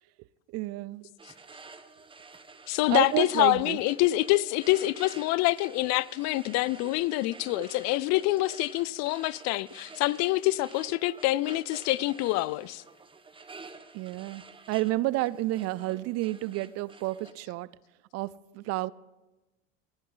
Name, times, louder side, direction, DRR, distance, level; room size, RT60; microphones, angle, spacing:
voice 1, 0.5-1.1 2.9-3.8 7.6-7.7 13.9-17.7 18.1-18.9, right 18 dB, 55° right, 0.4 m, -30 dB
sound 1, 1.2-17.3, right 4 dB, 15° right, 1.1 m, -50 dB
voice 2, 2.7-12.8, left 18 dB, 60° left, 0.5 m, -26 dB
19.5 x 13.0 x 3.9 m
supercardioid pair, 95°, 31 cm